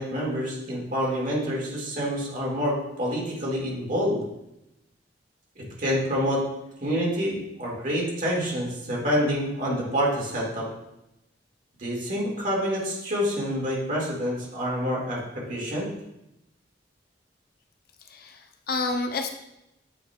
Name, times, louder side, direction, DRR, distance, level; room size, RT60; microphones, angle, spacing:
voice 1, 0.0-4.2 5.6-6.4 6.8-10.7 11.8-15.9, equal, 45° right, -3 dB, 1.9 m, -27 dB
voice 2, 18.0-19.3, left 3 dB, 55° left, 4 dB, 0.6 m, -29 dB
8.2 x 5.0 x 2.3 m, 0.86 s
head